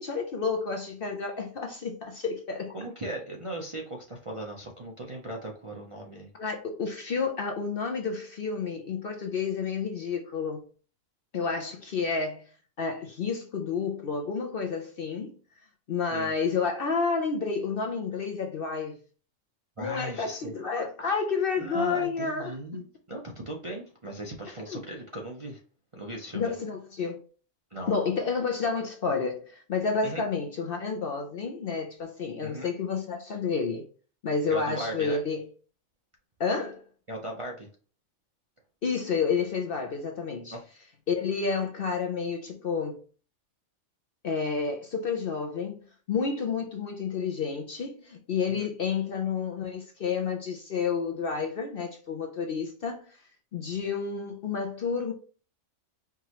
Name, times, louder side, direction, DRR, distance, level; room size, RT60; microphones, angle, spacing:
voice 1, 0.0-2.8 6.3-10.6 11.3-12.5 12.8-15.4 15.9-19.0 19.8-22.8 24.7-24.8 26.3-27.2 27.9-33.8 34.2-35.4 36.4-36.8 38.8-40.6 41.1-43.0 44.2-53.2 53.5-55.1, left 5 dB, 55° left, 0.7 m, -30 dB
voice 2, 2.7-6.3 16.1-16.3 19.8-20.5 21.6-22.8 23.1-25.6 25.9-26.5 27.7-27.9 30.0-30.2 32.4-32.7 34.5-35.2 37.1-37.7 40.5-40.6 48.5-48.7, right 1 dB, 35° right, 0.5 m, -38 dB
4.8 x 3.0 x 2.9 m
omnidirectional pair, 1.4 m